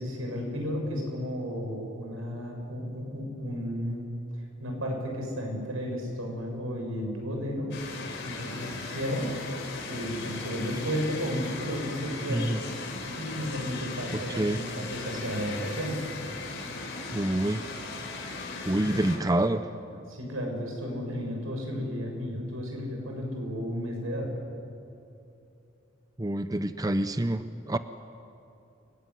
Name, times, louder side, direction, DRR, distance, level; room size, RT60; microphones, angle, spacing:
voice 1, 0.0-4.1 4.6-7.7 8.2-9.3 9.9-12.5 13.1-16.0 18.8-19.0 20.1-24.3, equal, 90° right, 1 dB, 7.6 m, -33 dB
sound 1, 7.7-19.2, left 3 dB, 60° left, 5.0 m, -38 dB
voice 2, 17.1-17.6 18.7-19.6 26.2-27.8, right 1 dB, 20° right, 10 dB, 0.6 m, -27 dB
30.0 x 19.5 x 9.9 m, 2.7 s
head